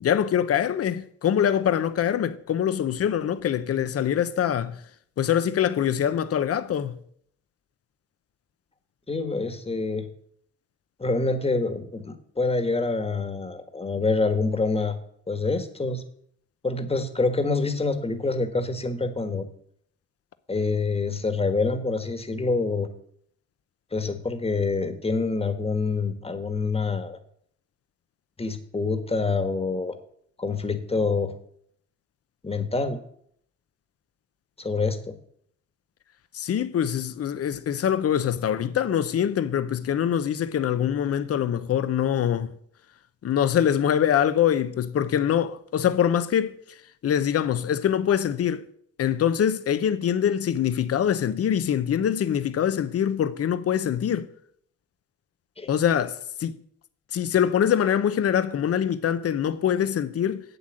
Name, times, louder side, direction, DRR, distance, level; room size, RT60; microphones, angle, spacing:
voice 1, 0.0-4.8 5.2-6.9 36.3-42.5 43.2-46.5 47.0-48.6 49.0-54.3 55.7-56.6 57.1-60.4, left 9 dB, 50° left, 0.9 m, -24 dB
voice 2, 9.1-10.1 11.0-15.0 15.3-16.0 16.6-19.5 20.5-22.9 23.9-27.2 28.4-29.9 30.4-31.3 32.4-33.0 34.6-35.1 55.6-55.7, left 3 dB, 20° left, 1.6 m, -26 dB
8.2 x 8.0 x 7.6 m
cardioid pair, 90°, 30 cm